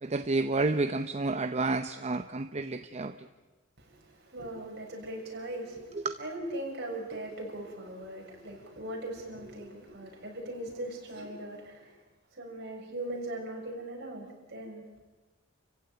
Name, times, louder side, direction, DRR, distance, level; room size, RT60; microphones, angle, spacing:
voice 1, 0.0-3.1 6.0-6.2, right 3 dB, 35° right, 9 dB, 0.7 m, -30 dB
voice 2, 3.8-12.0 12.3-14.8, right 1 dB, 55° right, 0 dB, 6.5 m, -40 dB
28.5 x 15.5 x 9.2 m, 1.2 s
head